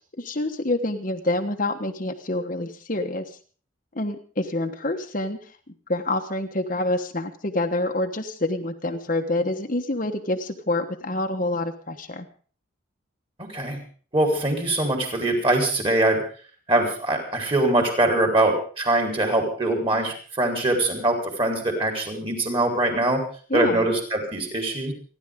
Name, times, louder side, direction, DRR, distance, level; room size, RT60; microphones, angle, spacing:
voice 1, 0.2-3.3 3.9-5.4 5.9-12.3 23.5-23.9, left 2 dB, 40° left, 4 dB, 1.3 m, -27 dB
voice 2, 13.4-13.8 14.1-16.2 16.7-23.2 23.5-24.9, right 2 dB, 25° right, 3 dB, 4.1 m, -23 dB
29.0 x 11.5 x 3.7 m, 0.42 s
head